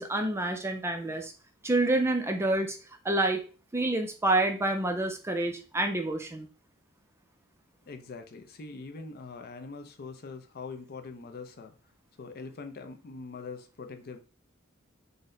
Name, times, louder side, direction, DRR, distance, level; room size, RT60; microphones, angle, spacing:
voice 1, 0.0-1.3 1.6-2.8 3.0-3.4 3.7-6.5, right 2 dB, 10° right, 5 dB, 0.4 m, -28 dB
voice 2, 7.8-11.7 12.2-14.2, left 4 dB, 45° left, 6 dB, 0.5 m, -43 dB
3.9 x 2.1 x 3.7 m, 0.36 s
head